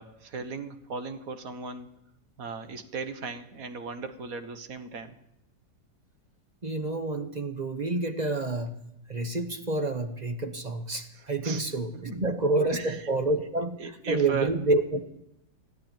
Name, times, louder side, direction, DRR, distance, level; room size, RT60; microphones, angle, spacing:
voice 1, 0.0-1.9 2.4-5.1 11.1-11.6 11.9-12.2 12.6-13.0 13.8-14.5, right 5 dB, 55° right, 9 dB, 1.6 m, -37 dB
voice 2, 6.6-8.7 9.1-13.8 14.1-15.2, right 2 dB, 30° right, 7 dB, 0.9 m, -28 dB
14.5 x 11.0 x 8.9 m, 0.82 s
omnidirectional pair, 1.8 m